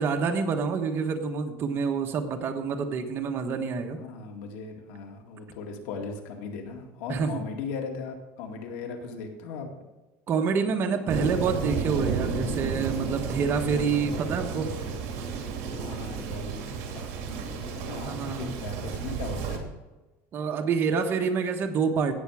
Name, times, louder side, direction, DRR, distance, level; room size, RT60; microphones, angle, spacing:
voice 1, 0.0-4.0 7.1-7.4 10.3-14.7 18.1-18.5 20.3-22.1, right 5 dB, 35° right, 4 dB, 1.3 m, -27 dB
voice 2, 3.9-9.7 15.7-19.6, left 5 dB, 75° left, 3 dB, 2.1 m, -38 dB
Thunder, 11.1-19.6, right 5 dB, 60° right, 2.6 m, -32 dB
17.0 x 7.1 x 4.9 m, 1.1 s
cardioid pair, 155°, 7 cm